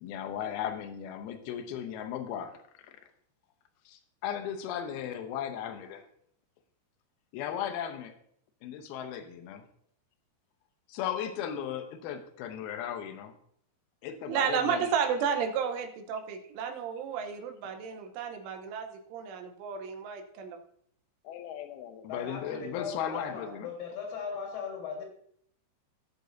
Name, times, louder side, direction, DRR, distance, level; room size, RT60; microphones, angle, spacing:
voice 1, 0.0-2.9 3.9-6.1 7.3-8.2 8.6-9.7 10.9-13.3 14.0-14.9 21.2-23.7, left 9 dB, 80° left, 7 dB, 2.3 m, -36 dB
voice 2, 14.3-20.6, right 7 dB, 85° right, 5 dB, 3.5 m, -32 dB
voice 3, 22.1-25.0, left 6 dB, 55° left, 1 dB, 3.1 m, -38 dB
18.0 x 6.7 x 2.7 m, 0.66 s
omnidirectional pair, 5.4 m